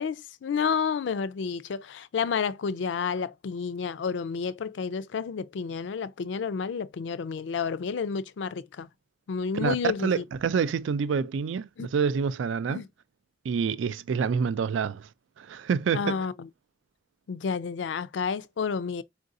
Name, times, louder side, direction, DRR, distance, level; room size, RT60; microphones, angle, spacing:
voice 1, 0.0-8.9 9.3-10.2 11.8-11.9 12.7-12.9 15.9-16.5 17.3-19.0, left 6 dB, 75° left, 0.4 m, -30 dB
voice 2, 9.5-12.8 13.4-15.1 15.4-16.3, right 6 dB, 85° right, 0.4 m, -27 dB
4.6 x 2.5 x 2.5 m
head